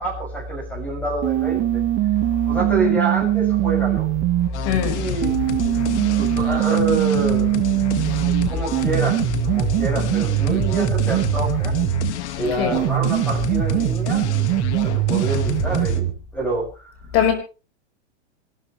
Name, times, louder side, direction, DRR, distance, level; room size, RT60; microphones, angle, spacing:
voice 1, 0.0-1.8 2.4-4.1 4.9-5.4 6.2-7.6 8.5-9.2 9.4-11.7 12.3-14.3 14.8-16.7, right 2 dB, 5° left, 6.9 m, -27 dB
sound 1, 1.2-4.5 5.2-12.2 12.7-16.2, right 15 dB, 35° right, 1.4 m, -21 dB
sound 2, 4.5-16.0, left 10 dB, 65° left, 2.0 m, -29 dB
voice 2, 4.6-5.1 12.6-12.8 17.1-17.3, left 7 dB, 40° left, 5.3 m, -20 dB
26.0 x 13.0 x 3.3 m
hypercardioid pair, 140°, 36 cm